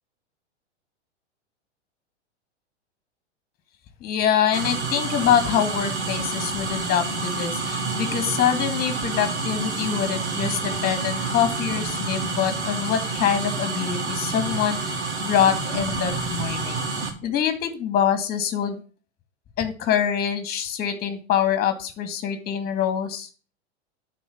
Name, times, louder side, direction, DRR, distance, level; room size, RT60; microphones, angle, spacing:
voice 1, 4.0-16.8 17.2-18.8 19.6-23.3, left 9 dB, 25° left, 9 dB, 2.1 m, -25 dB
sound 1, 4.5-17.1, right 3 dB, 75° right, 2.6 m, -28 dB
10.5 x 4.4 x 7.1 m, 0.36 s
figure-of-eight pair, 100°, 35 cm